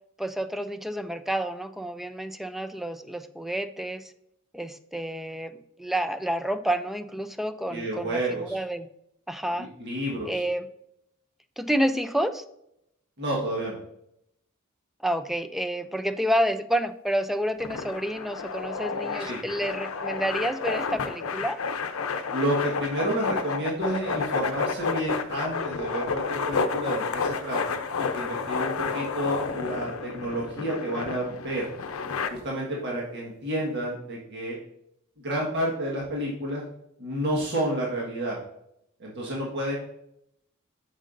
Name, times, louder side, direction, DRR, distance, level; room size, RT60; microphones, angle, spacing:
voice 1, 0.2-4.1 4.5-8.9 9.3-9.7 10.3-10.7 11.6-12.4 15.0-21.6, equal, ahead, 10 dB, 0.4 m, -29 dB
voice 2, 7.7-8.6 9.6-10.4 13.2-13.8 19.2-19.4 22.3-31.7 32.3-34.6 35.2-36.6 37.0-38.4 39.0-39.8, right 1 dB, 55° right, -3 dB, 1.5 m, -30 dB
sound 1, 17.6-32.3, left 5 dB, 80° left, 0.6 m, -30 dB
8.9 x 6.4 x 2.6 m, 0.77 s
head